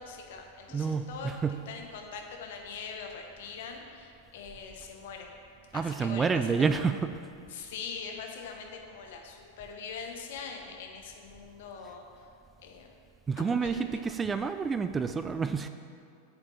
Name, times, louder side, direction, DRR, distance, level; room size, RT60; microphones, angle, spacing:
voice 1, 0.0-5.3 5.7-6.7 7.5-12.3 12.6-12.9 13.6-13.8, left 5 dB, 55° left, 2 dB, 1.1 m, -42 dB
voice 2, 0.7-1.6 5.7-7.1 13.3-15.7, right 5 dB, 15° right, 10 dB, 0.3 m, -29 dB
8.2 x 5.0 x 7.5 m, 2.4 s
figure-of-eight pair, 90°, 0 cm